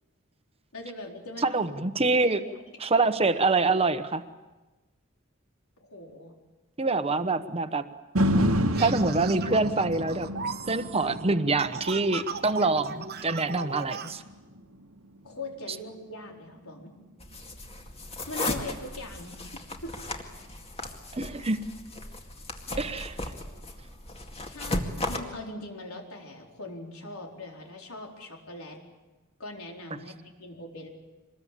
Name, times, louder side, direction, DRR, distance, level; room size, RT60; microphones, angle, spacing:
voice 1, 0.7-1.6 2.1-2.6 5.8-6.3 15.2-17.0 18.3-20.0 22.7-22.9 24.5-28.8 29.4-30.9, left 2 dB, 85° left, 1 dB, 4.3 m, -41 dB
voice 2, 1.4-2.4 2.8-4.2 6.8-7.8 8.8-10.3 10.7-14.2 21.1-21.6 22.8-23.1, right 3 dB, 30° right, 10 dB, 1.1 m, -25 dB
sound 1, 8.2-16.3 16.8-16.9, equal, 80° right, 1.6 m, -31 dB
sound 2, 8.7-14.1, right 5 dB, 50° right, 1.2 m, -38 dB
sound 3, 17.2-25.2, left 2 dB, 30° left, 2.2 m, -36 dB
25.0 x 21.0 x 8.6 m, 1.2 s
head